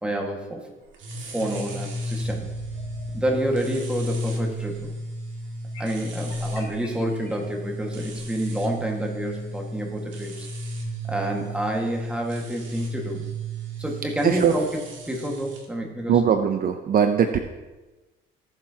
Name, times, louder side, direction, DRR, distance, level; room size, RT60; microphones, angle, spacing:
voice 1, 0.0-0.6 1.2-2.5 3.1-4.9 5.8-10.5 11.0-13.2 13.8-14.8 15.1-16.2, right 1 dB, 5° right, 0 dB, 1.7 m, -28 dB
sound 1, 0.9-15.7, right 1 dB, 65° right, 2.0 m, -33 dB
sound 2, 2.2-3.2 5.7-7.5, left 6 dB, 65° left, 2.5 m, -43 dB
voice 2, 16.1-17.4, right 8 dB, 45° right, 7 dB, 0.6 m, -20 dB
18.0 x 7.4 x 2.8 m, 1.1 s
cardioid pair, 130°, 21 cm